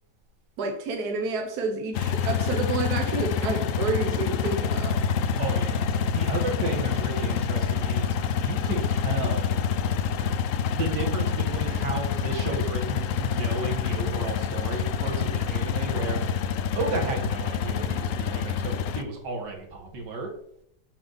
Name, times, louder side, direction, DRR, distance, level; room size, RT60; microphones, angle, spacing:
voice 1, 0.6-5.0, right 4 dB, 70° right, 4 dB, 1.4 m, -29 dB
sound 1, 1.9-19.0, left 7 dB, 65° left, 0.8 m, -27 dB
voice 2, 5.2-9.6 10.7-20.3, right 3 dB, 85° right, 2 dB, 2.2 m, -33 dB
7.0 x 6.4 x 4.0 m, 0.72 s
omnidirectional pair, 1.8 m